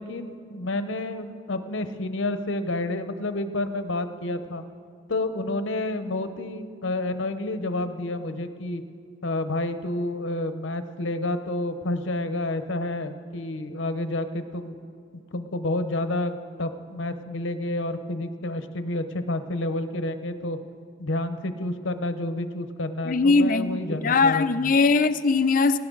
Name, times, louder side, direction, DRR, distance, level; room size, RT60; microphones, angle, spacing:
voice 1, 0.0-4.6 5.1-8.8 9.2-14.8 15.3-20.6 21.0-24.4, left 2 dB, 75° left, 0.9 m, -29 dB
voice 2, 23.1-25.8, left 4 dB, 45° left, 0.5 m, -21 dB
18.5 x 17.5 x 3.9 m
head